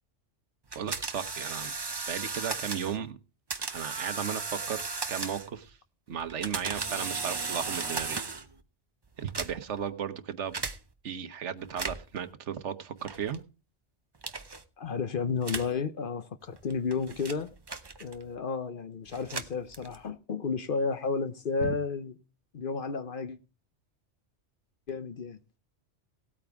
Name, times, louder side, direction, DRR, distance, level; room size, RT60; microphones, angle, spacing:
sound 1, 0.7-3.0 3.5-5.6 6.2-8.5 9.2-9.8 10.5-10.8 11.6-12.2 13.1-13.4 14.2-14.6 15.4-15.8 16.6-18.3 19.1-20.1, right 4 dB, 25° right, 0.6 m, -36 dB
voice 1, 0.7-1.7 2.1-3.2 3.6-4.8 5.1-5.8 6.1-8.2 9.2-10.6 11.0-13.4 21.6-21.7, right 8 dB, 75° right, 1.2 m, -35 dB
voice 2, 14.8-17.5 18.0-22.1 22.5-23.4 24.9-25.4, left 5 dB, 50° left, 0.9 m, -32 dB
17.5 x 8.7 x 3.5 m
omnidirectional pair, 1.2 m